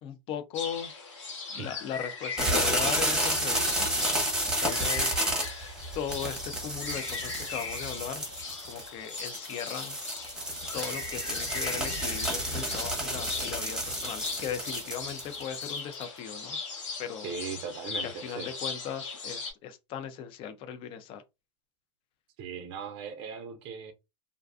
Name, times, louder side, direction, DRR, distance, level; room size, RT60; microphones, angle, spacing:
voice 1, 0.0-0.9 1.5-3.9 4.6-5.6 5.9-8.2 8.7-10.0 10.7-16.6 17.0-17.3 18.0-21.2, left 8 dB, 35° left, 0.4 m, -38 dB
sound 1, 0.5-19.5, left 4 dB, 90° left, 1.2 m, -39 dB
sound 2, 2.4-16.0, right 1 dB, 5° right, 0.8 m, -31 dB
voice 2, 17.2-18.5 22.4-23.9, right 6 dB, 45° right, 0.4 m, -38 dB
2.5 x 2.2 x 2.4 m
hypercardioid pair, 125°, 15 cm